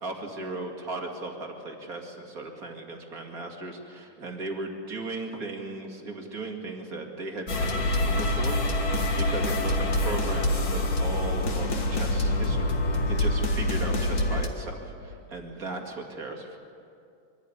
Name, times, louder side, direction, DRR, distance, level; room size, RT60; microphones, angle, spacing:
voice 1, 0.0-16.6, right 2 dB, 30° right, 2 dB, 2.1 m, -37 dB
sound 1, 7.5-14.5, left 1 dB, 40° left, 1.4 m, -26 dB
24.0 x 15.0 x 9.7 m, 2.5 s
omnidirectional pair, 3.9 m